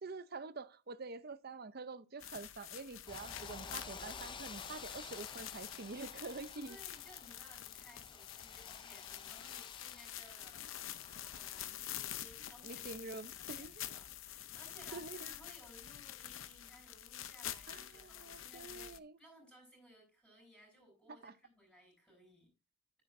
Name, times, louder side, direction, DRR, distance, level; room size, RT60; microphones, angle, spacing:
voice 1, 0.0-6.8 12.6-13.7 14.9-15.3 17.7-19.2 21.1-21.3, right 3 dB, 45° right, 0.6 m, -47 dB
sound 1, 2.2-19.0, left 12 dB, 70° left, 0.6 m, -47 dB
sound 2, 3.1-11.7, left 5 dB, 25° left, 0.5 m, -52 dB
voice 2, 6.7-10.7 11.3-22.5, equal, 5° left, 6.0 m, -61 dB
11.0 x 10.0 x 2.6 m
head